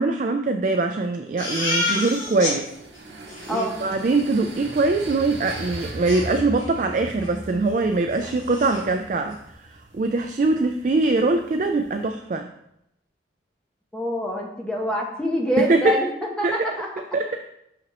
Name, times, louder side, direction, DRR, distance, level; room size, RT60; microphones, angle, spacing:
voice 1, 0.0-2.7 3.5-12.5 15.6-16.0 16.4-16.7 17.1-17.4, right 3 dB, 45° right, 5 dB, 0.3 m, -23 dB
Crying sobbing, 1.4-2.6 3.0-3.1 3.3-3.7 5.5-5.6 6.1-6.8 7.2-7.4 7.7-7.8 8.1-8.8, left 2 dB, 45° left, 2.3 m, -29 dB
sound 1, 1.7-12.1, right 1 dB, 85° right, 1.6 m, -40 dB
voice 2, 3.5-3.9 13.9-16.1 16.4-16.9, equal, 5° left, -1 dB, 0.9 m, -25 dB
6.1 x 5.8 x 3.0 m, 0.80 s
head